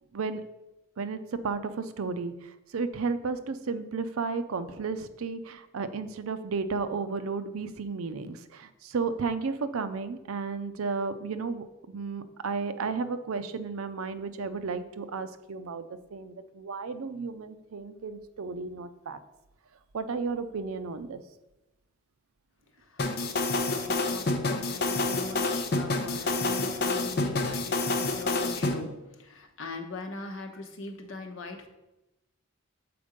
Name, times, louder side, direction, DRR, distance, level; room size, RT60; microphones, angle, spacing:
voice 1, 1.0-2.3 2.7-19.2 19.9-21.2, right 4 dB, 85° right, 11 dB, 0.5 m, -33 dB
sound 1, 23.0-28.7, left 2 dB, 50° left, 0.7 m, -28 dB
voice 2, 23.6-31.7, left 3 dB, 70° left, 4 dB, 1.0 m, -41 dB
6.8 x 4.4 x 5.1 m, 0.99 s
head